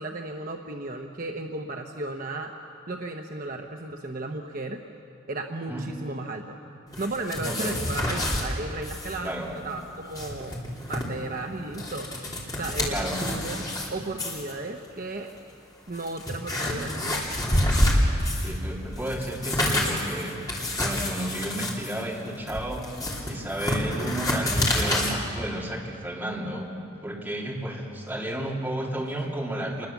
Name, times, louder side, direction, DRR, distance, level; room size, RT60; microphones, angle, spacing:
voice 1, 0.0-2.5 2.9-4.8 5.3-6.5 7.0-9.4 9.6-10.5 10.9-12.1 12.5-13.6 13.9-15.3 15.9-17.2, right 2 dB, 40° right, 3 dB, 0.9 m, -34 dB
sound 1, 6.9-8.5 8.8-9.2 9.4-9.5 10.0-11.0 11.6-13.9 14.2-14.5 15.3-15.4 15.9-18.6 18.9-25.1, left 1 dB, 15° left, 3.3 m, -28 dB
voice 2, 7.4-7.8 9.2-9.5 10.8-10.9 12.9-13.2 16.7-17.2 18.4-20.4 20.8-22.8 23.2-26.7 27.0-29.9, right 1 dB, 10° right, -4 dB, 3.2 m, -32 dB
27.5 x 21.0 x 7.2 m, 2.7 s
head